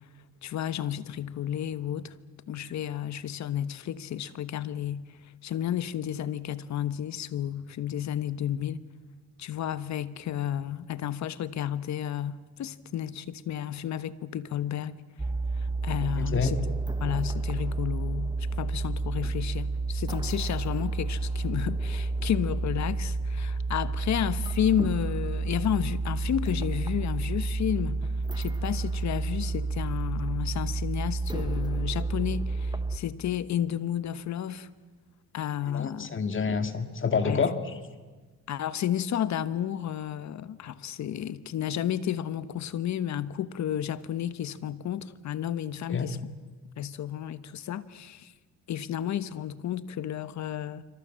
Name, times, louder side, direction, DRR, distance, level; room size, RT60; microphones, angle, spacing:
voice 1, 0.4-2.1 2.5-5.1 5.4-8.8 9.4-15.0 15.8-16.6 17.0-28.1 28.4-34.7 35.3-36.2 37.2-37.4 38.5-46.2 46.8-48.3 48.7-50.8, left 10 dB, 65° left, 1.3 m, -32 dB
sound 1, 15.2-33.0, right 3 dB, 15° right, 1.3 m, -30 dB
voice 2, 16.2-16.5 35.7-37.8 45.9-46.1, left 5 dB, 40° left, 2.2 m, -28 dB
27.0 x 25.0 x 7.7 m
cardioid pair, 90°, 30 cm